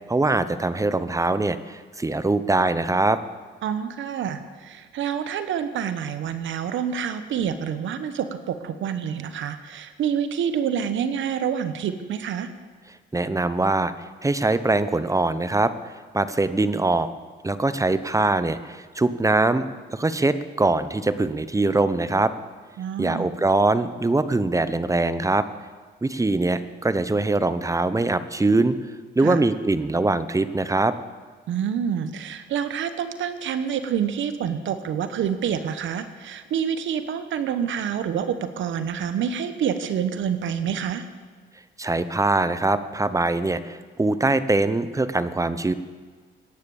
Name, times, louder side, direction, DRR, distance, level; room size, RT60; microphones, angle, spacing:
voice 1, 0.1-3.2 13.1-13.9 14.2-17.1 17.4-22.3 23.0-25.5 26.0-28.8 29.2-30.9 41.8-45.7, right 2 dB, 15° right, 13 dB, 0.9 m, -22 dB
voice 2, 3.6-12.5 22.8-23.3 29.2-29.4 31.5-41.1, right 8 dB, 75° right, 10 dB, 1.1 m, -27 dB
17.5 x 10.5 x 7.1 m, 1.5 s
cardioid pair, 90°, 20 cm